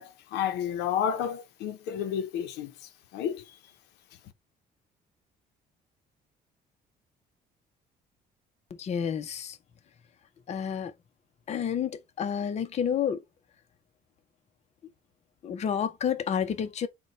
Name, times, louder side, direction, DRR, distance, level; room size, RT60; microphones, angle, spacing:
voice 1, 0.0-2.7 3.1-3.4, left 8 dB, 85° left, 0.6 m, -31 dB
voice 2, 8.8-9.6 10.5-10.9 11.5-13.2 15.4-16.9, left 8 dB, 40° left, 0.6 m, -30 dB
3.9 x 2.2 x 4.1 m
cardioid pair, 110°, 17 cm